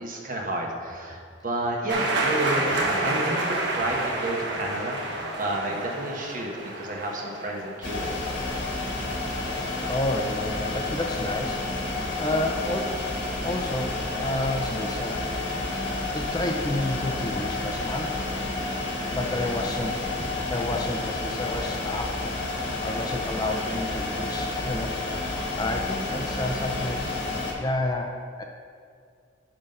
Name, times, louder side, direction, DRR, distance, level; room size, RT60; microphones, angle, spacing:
voice 1, 0.0-5.0 5.4-8.1 19.3-19.5, right 1 dB, 45° right, 0 dB, 1.1 m, -31 dB
sound 1, 1.9-8.5, right 2 dB, 70° right, 1.1 m, -29 dB
sound 2, 7.8-27.5, left 2 dB, 75° left, 1.4 m, -30 dB
voice 2, 9.9-11.6 12.2-13.1 13.4-15.3 16.1-18.2 19.1-22.2 22.8-25.0 25.6-27.1 27.6-28.4, left 1 dB, 20° left, 2 dB, 0.4 m, -30 dB
9.6 x 3.9 x 5.4 m, 2.2 s
head